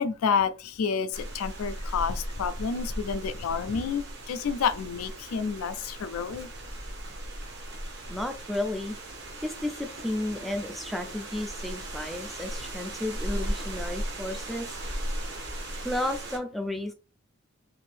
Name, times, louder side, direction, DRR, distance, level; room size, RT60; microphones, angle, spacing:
voice 1, 0.0-6.5, left 6 dB, 90° left, 0.4 m, -29 dB
sound 1, 1.1-16.4, right 1 dB, 50° right, 0.7 m, -37 dB
voice 2, 8.1-9.0 9.4-14.7 15.8-16.9, left 1 dB, ahead, 0.3 m, -33 dB
2.6 x 2.5 x 3.3 m
head